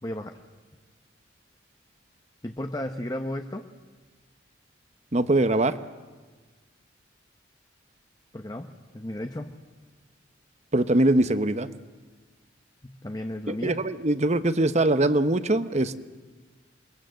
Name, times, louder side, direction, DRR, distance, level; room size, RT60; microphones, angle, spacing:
voice 1, 0.0-0.3 2.4-3.7 8.3-9.5 12.8-13.8, left 1 dB, 20° left, 6 dB, 0.9 m, -34 dB
voice 2, 5.1-5.8 10.7-11.7 13.5-16.0, right 2 dB, 35° right, 12 dB, 0.9 m, -22 dB
27.5 x 22.0 x 7.8 m, 1.4 s
head